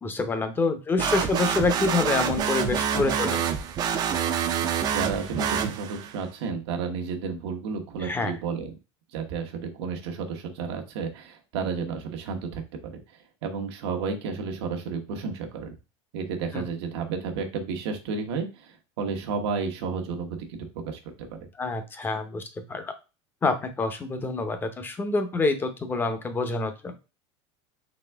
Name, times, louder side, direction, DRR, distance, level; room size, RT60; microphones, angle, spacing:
voice 1, 0.0-3.5 8.0-8.3 16.5-16.6 21.6-22.4 22.7-22.9 23.4-26.9, left 3 dB, 15° left, 8 dB, 0.6 m, -27 dB
sound 1, 1.0-6.2, right 8 dB, 30° right, 0.5 m, -27 dB
voice 2, 4.9-8.7 9.1-13.0 13.4-15.7 16.1-21.0 21.3-21.5, right 5 dB, 85° right, 3 dB, 1.1 m, -32 dB
4.2 x 3.4 x 3.4 m, 0.30 s
cardioid pair, 155°, 14 cm